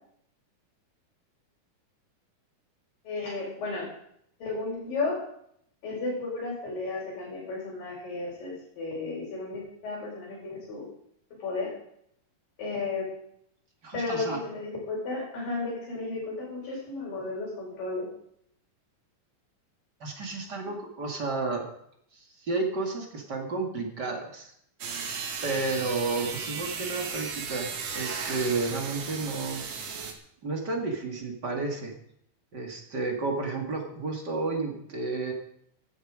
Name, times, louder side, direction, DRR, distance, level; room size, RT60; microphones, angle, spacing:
voice 1, 3.0-3.9 4.4-5.2 5.8-10.9 11.4-11.7 12.6-13.1 13.9-18.1, left 3 dB, 85° left, -6 dB, 6.5 m, -33 dB
voice 2, 13.8-14.4 20.0-21.6 22.1-24.5 25.4-27.7 28.0-29.6 30.4-31.9 32.5-35.3, right 3 dB, 35° right, 2 dB, 2.5 m, -31 dB
sound 1, 24.8-30.1, right 5 dB, 50° right, 2.6 m, -35 dB
15.5 x 12.5 x 5.0 m, 0.72 s
omnidirectional pair, 3.9 m